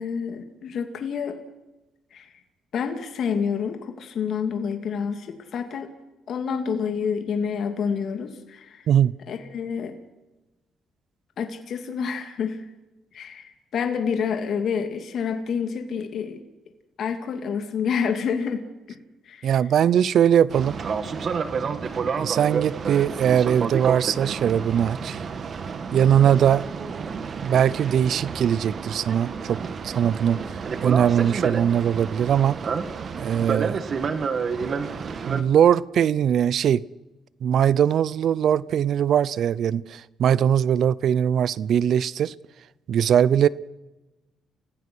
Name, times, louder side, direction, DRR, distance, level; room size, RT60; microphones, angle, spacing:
voice 1, 0.0-1.4 2.1-2.3 2.7-5.9 6.3-8.8 9.3-9.9 11.4-12.6 13.1-16.4 17.0-18.6 18.9-19.0 19.3-19.5, left 6 dB, 65° left, 6 dB, 2.5 m, -28 dB
voice 2, 19.4-20.8 22.2-25.2 25.9-26.7 27.4-29.6 29.8-30.4 30.8-32.6 33.2-33.8 35.2-36.8 37.4-42.3 42.9-43.5, right 9 dB, 65° right, 21 dB, 0.7 m, -21 dB
Boat Water vehicle, 20.5-35.4, right 5 dB, 50° right, 1.9 m, -30 dB
30.0 x 16.5 x 6.3 m, 1.1 s
cardioid pair, 90°, 0 cm